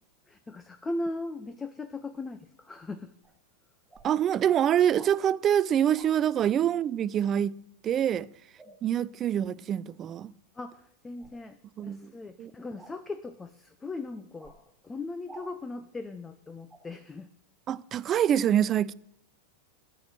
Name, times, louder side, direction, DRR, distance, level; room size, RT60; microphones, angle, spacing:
voice 1, 0.3-3.1 8.7-8.8 10.6-14.5 14.8-17.3, left 2 dB, 15° left, 0.7 m, -38 dB
sound 1, 3.2-3.3 3.9-4.1 4.9-5.2 5.9-6.1 8.6-8.8 11.2-11.4 12.8-13.0 14.4-14.6 15.3-15.5 16.7-16.8, right 3 dB, 5° right, 3.2 m, -50 dB
voice 2, 4.0-7.6 7.8-8.3 8.8-10.3 11.8-12.1 12.4-12.5 17.7-18.9, right 10 dB, 30° right, 0.4 m, -25 dB
13.5 x 6.2 x 8.8 m
figure-of-eight pair, 90°, 0 cm